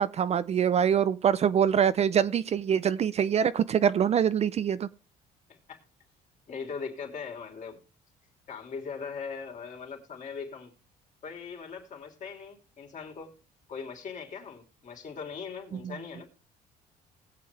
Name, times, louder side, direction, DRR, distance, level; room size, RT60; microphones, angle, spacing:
voice 1, 0.0-4.9, right 8 dB, 40° right, 0.5 m, -24 dB
voice 2, 5.5-5.8 6.5-7.8 8.5-10.7 11.2-13.3 13.7-16.3, left 5 dB, 50° left, 3.2 m, -40 dB
19.5 x 7.6 x 3.3 m
cardioid pair, 110°, 17 cm